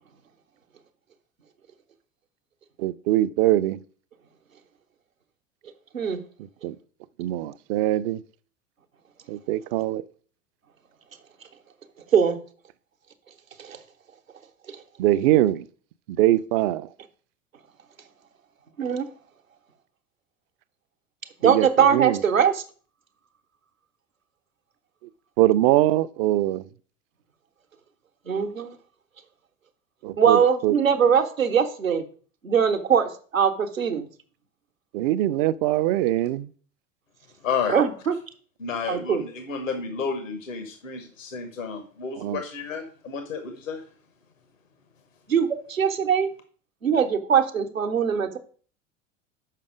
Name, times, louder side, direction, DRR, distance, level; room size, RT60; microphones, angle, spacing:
voice 1, 2.8-3.8 6.6-6.8 7.2-8.2 9.3-10.0 15.0-15.7 16.1-16.9 21.4-22.2 25.4-26.7 30.0-30.8 34.9-36.5 42.2-42.4, right 14 dB, 45° right, 0.5 m, -22 dB
voice 2, 21.4-22.6 28.3-28.7 30.2-32.0 32.4-34.1 37.7-38.1 38.9-39.2 45.3-46.3 46.8-48.4, right 7 dB, 85° right, 0.9 m, -21 dB
voice 3, 37.4-37.8 38.6-43.8, left 5 dB, 75° left, 1.2 m, -31 dB
6.6 x 5.3 x 4.9 m
figure-of-eight pair, 80°, 39 cm